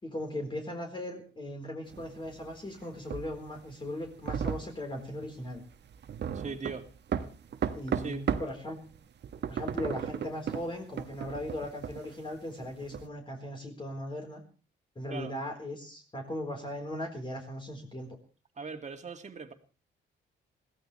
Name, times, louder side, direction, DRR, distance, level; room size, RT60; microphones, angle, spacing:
voice 1, 0.0-5.6 7.7-8.8 9.5-14.4 15.0-18.1, left 1 dB, 25° left, 4.5 m, -38 dB
sound 1, 1.9-8.6 8.9-13.1, right 8 dB, 60° right, 1.4 m, -35 dB
voice 2, 6.3-6.9 7.9-8.2 15.1-15.3 18.6-19.5, right 4 dB, 35° right, 2.4 m, -39 dB
21.5 x 16.0 x 3.4 m
cardioid pair, 90°, 20 cm